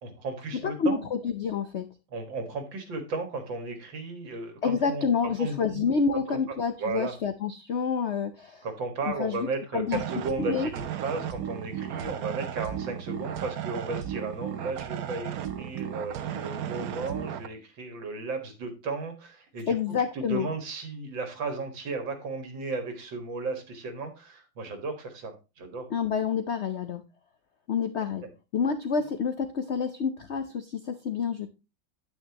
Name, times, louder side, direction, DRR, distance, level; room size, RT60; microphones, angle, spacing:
voice 1, 0.0-1.1 2.1-5.1 5.4-6.0 6.3-6.4 6.8-7.1 8.6-19.8 20.1-25.9, right 3 dB, 80° right, 7 dB, 2.4 m, -34 dB
voice 2, 0.6-1.9 4.6-8.7 9.2-10.0 10.5-10.7 19.7-20.5 25.9-27.0 27.7-28.2 28.5-31.5, left 6 dB, 65° left, 9 dB, 0.6 m, -28 dB
sound 1, 9.9-17.5, right 10 dB, 60° right, 1.1 m, -35 dB
9.1 x 8.8 x 2.9 m, 0.27 s
omnidirectional pair, 2.0 m